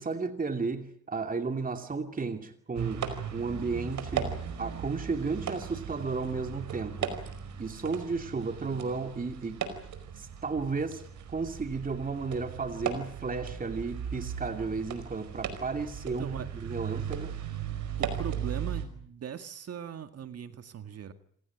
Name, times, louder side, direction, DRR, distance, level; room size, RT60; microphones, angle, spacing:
voice 1, 0.0-3.0 3.3-7.3 7.6-9.6 10.2-11.0 11.3-17.5, right 4 dB, 30° right, 6 dB, 2.6 m, -33 dB
sound 1, 2.7-18.8, right 8 dB, 70° right, 4.9 m, -37 dB
voice 2, 16.2-16.5 18.0-21.1, right 8 dB, 55° right, 9 dB, 2.0 m, -39 dB
26.5 x 17.0 x 9.2 m, 0.64 s
cardioid pair, 90°, 30 cm